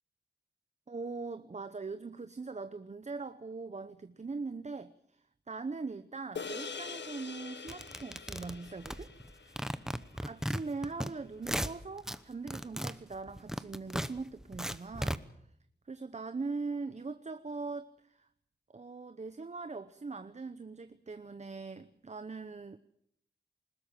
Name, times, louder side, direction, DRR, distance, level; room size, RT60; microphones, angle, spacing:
voice 1, 0.9-9.7 10.1-15.2 15.9-18.3 18.7-22.8, right 4 dB, 40° right, 11 dB, 0.8 m, -41 dB
sound 1, 6.3-10.9, left 5 dB, 85° left, 1.4 m, -45 dB
sound 2, 7.7-9.3 9.6-11.1 11.4-12.2 12.5-15.2, equal, 5° right, 0.9 m, -36 dB
21.5 x 20.0 x 7.5 m, 0.71 s
wide cardioid pair, 105°, 18 cm